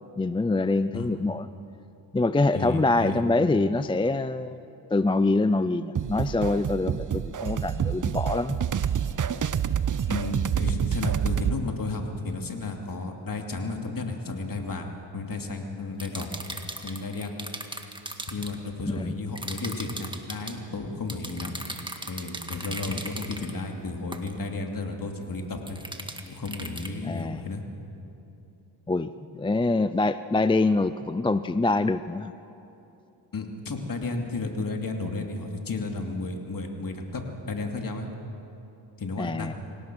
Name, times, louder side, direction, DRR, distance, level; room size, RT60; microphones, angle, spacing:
voice 1, 0.2-1.5 2.1-4.6 4.9-8.6 19.0-19.1 27.0-27.4 28.9-32.3 39.2-39.5, left 2 dB, 10° left, 13 dB, 0.4 m, -25 dB
voice 2, 2.5-3.2 10.1-16.3 16.8-17.3 18.3-21.6 22.0-25.8 26.3-27.6 33.3-38.1 39.0-39.5, left 3 dB, 50° left, 3 dB, 2.7 m, -33 dB
sound 1, 6.0-11.6, right 8 dB, 45° right, 0.8 m, -27 dB
sound 2, 16.0-18.5 19.4-20.6 21.1-23.5 24.1-24.3 25.7-26.9, right 1 dB, 10° right, 1.8 m, -38 dB
26.5 x 17.5 x 6.3 m, 2.9 s
cardioid pair, 65°, 44 cm